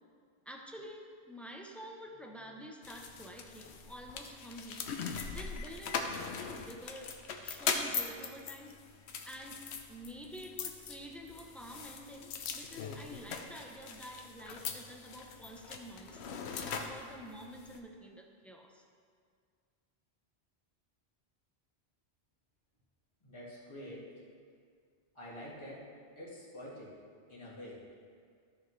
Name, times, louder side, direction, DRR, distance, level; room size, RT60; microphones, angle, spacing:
voice 1, 0.5-4.9 5.3-8.8 9.3-9.6 9.9-16.2 16.6-18.8, equal, ahead, 0 dB, 0.5 m, -49 dB
sound 1, 2.8-17.8, left 5 dB, 85° left, 0.9 m, -41 dB
voice 2, 23.2-24.0 25.2-25.9 26.2-26.9 27.3-27.8, equal, 25° left, -7 dB, 1.9 m, -47 dB
13.0 x 5.7 x 3.2 m, 2.1 s
omnidirectional pair, 1.1 m